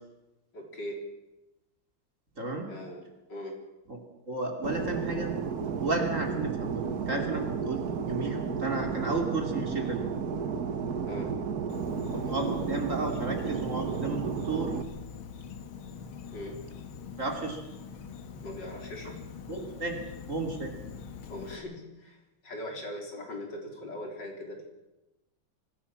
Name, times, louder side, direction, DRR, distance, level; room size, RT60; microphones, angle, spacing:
voice 1, 0.5-1.0 2.7-3.6 11.1-11.4 16.3-16.6 18.4-19.3 21.3-24.6, left 1 dB, 55° left, 2 dB, 4.3 m, -40 dB
voice 2, 2.4-2.7 3.9-4.0 4.3-5.3 5.8-10.0 12.1-14.7 17.2-17.6 19.5-20.0 20.3-20.7, right 2 dB, 35° right, 3 dB, 3.1 m, -33 dB
Fixed-wing aircraft airplane, 4.6-14.8, right 6 dB, 50° right, 1.5 m, -33 dB
Insect, 11.7-21.6, left 6 dB, 75° left, 2.3 m, -43 dB
24.0 x 16.0 x 7.4 m, 1.0 s
omnidirectional pair, 2.3 m